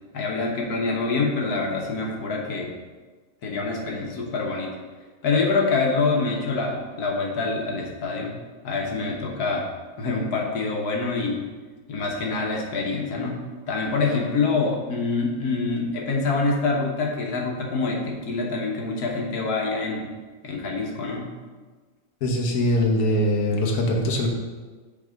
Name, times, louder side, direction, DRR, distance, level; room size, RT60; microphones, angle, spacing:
voice 1, 0.1-2.7 3.4-4.7 5.2-8.3 8.6-9.7 10.0-11.5 11.9-13.4 13.7-20.1 20.4-21.3, left 3 dB, 90° left, -1 dB, 1.6 m, -26 dB
voice 2, 22.2-24.3, left 1 dB, 70° left, -1 dB, 1.5 m, -22 dB
5.9 x 4.8 x 6.3 m, 1.4 s
omnidirectional pair, 1.6 m